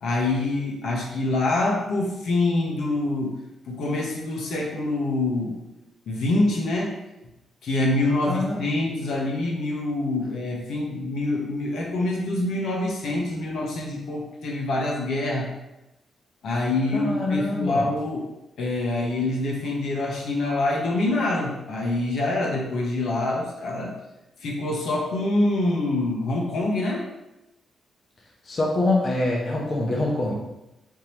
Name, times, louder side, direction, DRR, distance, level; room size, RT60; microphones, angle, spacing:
voice 1, 0.0-3.4 3.7-5.6 6.1-7.0 7.6-15.5 16.4-18.3 18.6-23.9 24.4-27.1, left 2 dB, 75° left, -1 dB, 1.0 m, -25 dB
voice 2, 8.3-8.6 16.9-17.9 28.5-30.3, left 2 dB, 40° left, -2 dB, 0.8 m, -24 dB
4.6 x 3.7 x 2.9 m, 0.95 s
cardioid pair, 115°, 0 cm